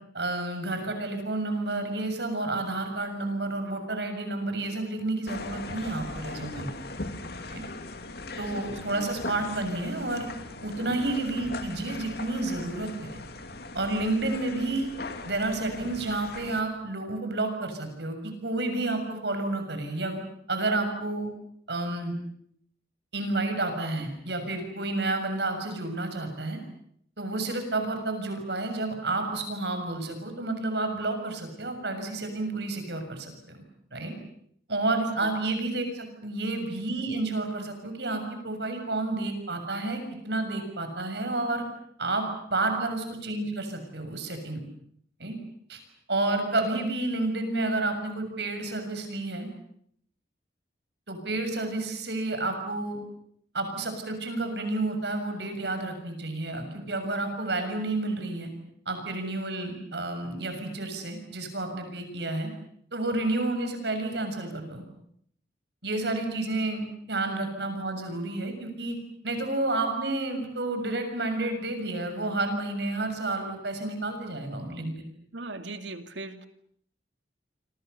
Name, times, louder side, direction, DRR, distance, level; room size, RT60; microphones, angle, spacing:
voice 1, 0.1-6.7 7.5-7.6 8.4-10.3 10.6-13.1 13.7-14.9 15.2-20.2 20.5-21.3 21.7-22.1 23.1-26.6 27.2-33.6 33.9-34.1 34.7-41.6 42.0-44.6 45.2-45.4 45.7-45.8 46.1-49.5 51.1-53.0 53.5-58.5 58.9-62.5 62.9-64.8 65.8-69.0 69.2-75.0, right 2 dB, 70° right, 7 dB, 6.9 m, -30 dB
sound 1, 5.3-16.6, left 2 dB, 60° left, 2.5 m, -39 dB
voice 2, 8.7-9.1 75.3-76.5, right 2 dB, 85° right, 8 dB, 2.5 m, -39 dB
28.0 x 25.5 x 6.9 m, 0.68 s
head